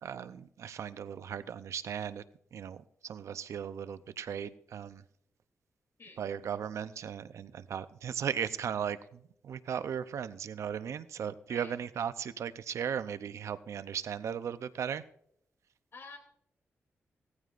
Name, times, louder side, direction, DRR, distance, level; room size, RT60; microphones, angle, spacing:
voice 1, 0.0-2.2 2.5-5.0 6.2-15.0, right 8 dB, 80° right, 13 dB, 0.6 m, -37 dB
voice 2, 6.0-6.2 11.5-11.8 15.9-16.2, left 4 dB, 55° left, 3 dB, 3.1 m, -48 dB
18.0 x 14.5 x 2.5 m, 0.70 s
wide cardioid pair, 115°, 5 cm